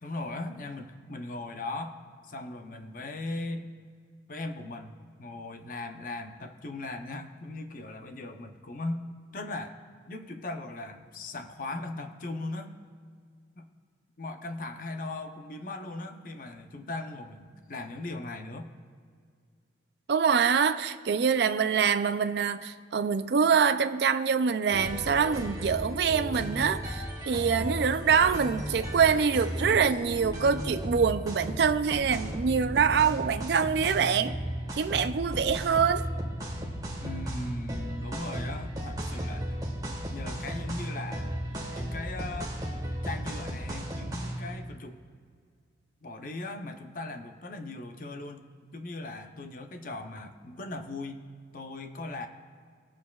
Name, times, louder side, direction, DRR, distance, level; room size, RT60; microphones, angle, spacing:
voice 1, 0.0-2.0 2.3-3.7 4.3-9.1 9.3-9.8 10.1-12.8 13.6-13.7 14.2-18.7 37.0-39.6 40.1-41.4 41.7-42.6 43.0-45.0 46.0-48.5 48.7-51.2 51.5-52.3, left 2 dB, 45° left, 0.6 m, -38 dB
voice 2, 20.1-34.4 34.8-36.0, right 6 dB, 60° right, 0.4 m, -25 dB
sound 1, 24.7-44.5, equal, 20° right, 1.4 m, -35 dB
21.5 x 7.3 x 2.3 m
head